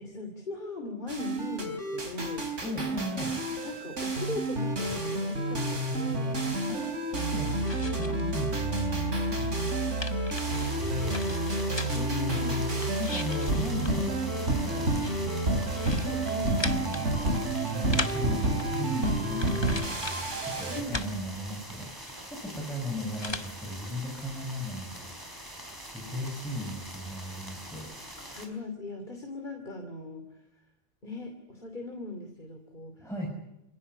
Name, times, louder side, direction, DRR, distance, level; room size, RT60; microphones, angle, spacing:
voice 1, 0.0-2.6 3.6-6.4 10.6-11.4 11.9-12.6 16.0-16.6 20.7-21.2 28.3-30.4 31.0-33.1, left 2 dB, 40° left, 4 dB, 3.1 m, -39 dB
sound 1, 1.1-20.8, right 2 dB, 90° right, 4.3 m, -30 dB
voice 2, 2.6-3.4 6.7-9.1 9.4-9.8 10.8-11.4 12.3-12.4 13.0-16.0 16.4-17.3 17.7-25.6 25.9-27.9 33.0-33.3, left 1 dB, ahead, -2 dB, 6.8 m, -37 dB
sound 2, 7.1-8.3 8.6-12.1 12.6-20.4 20.7-23.5, left 2 dB, 20° left, 1.4 m, -40 dB
sound 3, 10.4-28.5, equal, 15° right, 4.7 m, -44 dB
27.0 x 17.5 x 9.8 m, 0.85 s
omnidirectional pair, 1.2 m